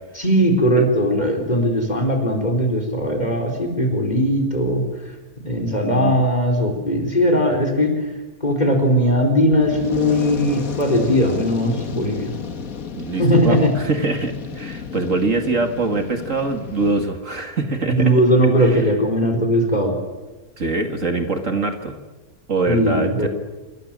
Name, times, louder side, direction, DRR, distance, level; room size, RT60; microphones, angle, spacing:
voice 1, 0.2-4.8 5.4-7.9 8.4-12.3 13.2-13.7 17.9-19.9 22.7-23.3, equal, 25° left, 3 dB, 4.7 m, -19 dB
voice 2, 5.8-6.1 13.0-18.1 18.6-18.9 20.6-22.0 22.5-23.3, right 3 dB, 50° right, 5 dB, 2.5 m, -23 dB
Fire, 9.4-17.1, left 5 dB, 60° left, 2.0 m, -32 dB
28.0 x 25.5 x 7.6 m, 1.2 s
omnidirectional pair, 1.7 m